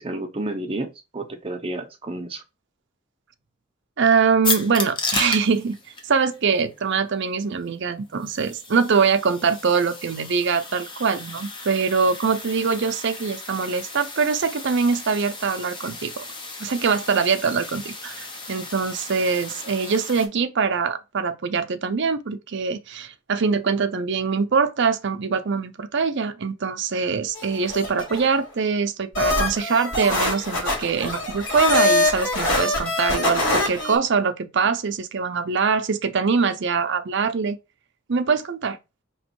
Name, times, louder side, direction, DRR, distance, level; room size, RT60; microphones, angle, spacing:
voice 1, 0.0-2.4, right 2 dB, 25° right, 0.8 m, -31 dB
voice 2, 4.0-5.8 6.0-16.2 16.6-37.6 38.1-38.8, right 5 dB, 60° right, 0.6 m, -23 dB
sound 1, 4.4-20.3, left 3 dB, 25° left, 0.9 m, -34 dB
sound 2, 27.3-28.4 29.1-34.0, left 2 dB, 65° left, 3.0 m, -23 dB
5.1 x 3.1 x 3.0 m
head